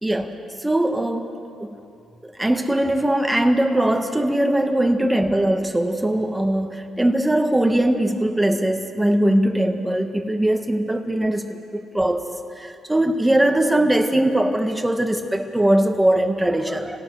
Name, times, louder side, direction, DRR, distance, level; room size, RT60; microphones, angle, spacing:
voice 1, 0.0-1.3 1.6-1.8 2.2-12.3 12.6-17.0, right 1 dB, 10° right, 5 dB, 1.7 m, -21 dB
26.5 x 17.5 x 6.3 m, 2.7 s
cardioid pair, 90°, 0 cm